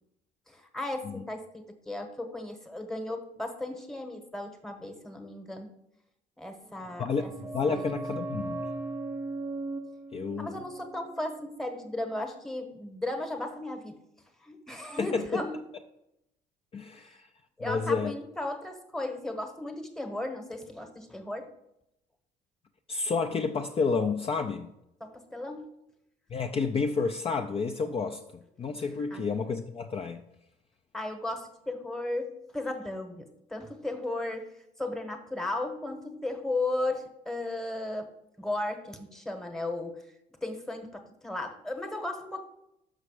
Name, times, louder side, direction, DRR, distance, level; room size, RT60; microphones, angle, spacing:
voice 1, 0.5-5.7 6.4-7.3 7.7-7.9 10.4-14.0 14.4-15.5 17.0-17.1 17.6-21.5 25.0-25.7 29.1-29.3 30.9-34.5 34.8-38.1 38.4-40.0 40.4-42.4, left 2 dB, 5° left, 5 dB, 1.1 m, -35 dB
sound 1, 6.7-12.2 12.4-12.5, right 2 dB, 15° right, 0.6 m, -38 dB
voice 2, 7.5-8.6 10.1-10.6 15.0-15.4 16.7-17.3 17.6-18.1 22.9-24.7 26.3-28.2 28.6-30.2, left 4 dB, 35° left, 5 dB, 0.5 m, -30 dB
6.2 x 5.7 x 4.9 m, 0.82 s
cardioid pair, 110°, 17 cm